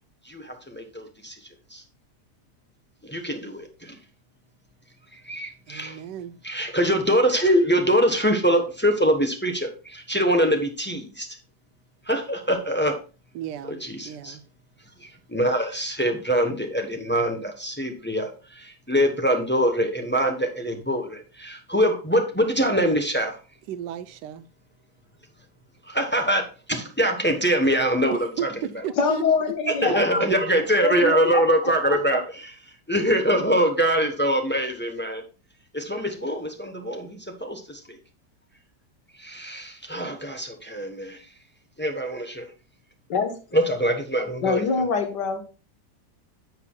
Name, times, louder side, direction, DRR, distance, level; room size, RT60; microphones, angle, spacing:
voice 1, 0.2-1.8 3.0-4.0 5.1-6.0 6.4-11.3 12.0-13.0 13.7-14.4 15.0-23.4 25.8-28.6 29.7-32.6 32.9-35.2 35.7-38.0 39.1-41.3 41.8-42.5 43.5-44.8, equal, 10° left, 0.8 m, -24 dB
voice 2, 5.7-6.4 13.3-13.8 14.0-14.4 23.7-24.5 28.4-28.5 28.8-29.2 29.9-30.0 31.0-31.2, right 10 dB, 85° right, 1.2 m, -33 dB
voice 3, 29.0-30.0 30.8-31.4 43.1-43.4 44.4-45.4, left 5 dB, 85° left, 1.9 m, -24 dB
10.5 x 6.9 x 2.3 m
omnidirectional pair, 1.8 m